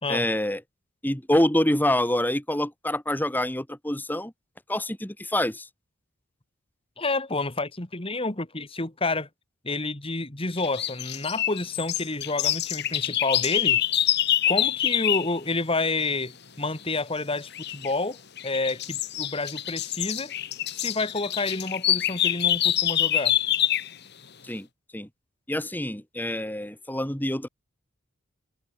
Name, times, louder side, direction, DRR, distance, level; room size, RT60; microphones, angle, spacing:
voice 1, 0.1-0.6 1.0-4.3 4.7-5.7 24.4-24.7 24.9-25.1 25.5-27.5, left 1 dB, 10° left, 3.1 m, -26 dB
voice 2, 7.0-9.3 9.6-13.8 14.5-18.2 18.4-20.3 20.7-23.4, left 3 dB, 25° left, 2.2 m, -29 dB
sound 1, 10.6-15.3 17.5-17.9 18.4-23.9, left 12 dB, 55° left, 2.1 m, -26 dB
head